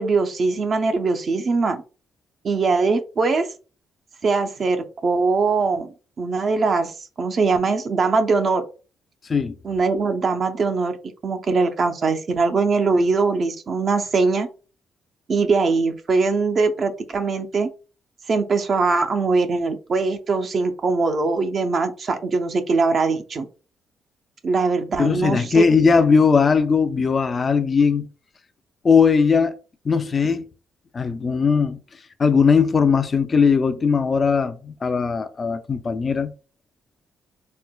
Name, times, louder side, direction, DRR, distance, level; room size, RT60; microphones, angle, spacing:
voice 1, 0.0-1.8 2.4-3.5 4.2-5.9 6.2-8.6 9.6-11.0 11.2-14.5 15.3-17.7 18.3-23.5 24.4-25.6, right 4 dB, 50° right, 0.5 m, -21 dB
voice 2, 25.0-28.1 28.8-29.6 29.8-30.5 30.9-31.8 32.2-36.3, left 5 dB, 35° left, 0.4 m, -19 dB
4.3 x 2.1 x 2.2 m
cardioid pair, 95°, 0 cm